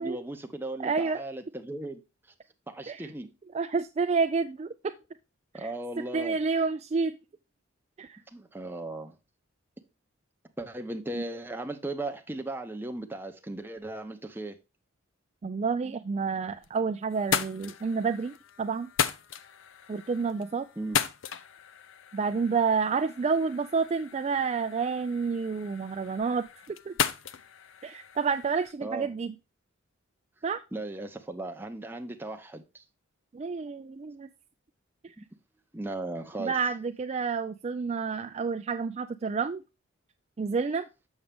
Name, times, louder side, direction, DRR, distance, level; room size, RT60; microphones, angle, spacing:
voice 1, 0.0-2.0 2.7-3.3 5.5-6.4 8.3-9.1 10.6-14.6 15.8-16.1 20.8-21.0 28.8-29.1 30.7-32.8 35.2-35.3 35.7-36.6, right 2 dB, 10° right, 0.8 m, -37 dB
voice 2, 0.8-1.2 2.9-3.1 3.5-4.7 5.6-5.7 6.1-7.1 8.0-8.2 11.1-11.2 15.4-18.9 19.9-20.7 22.1-26.9 27.8-29.3 30.4-30.6 33.3-34.3 35.0-35.1 36.4-39.6 40.4-40.9, right 5 dB, 35° right, 0.3 m, -29 dB
sound 1, 16.2-16.8 17.1-28.7, left 8 dB, 70° left, 0.6 m, -36 dB
7.1 x 6.4 x 3.5 m
head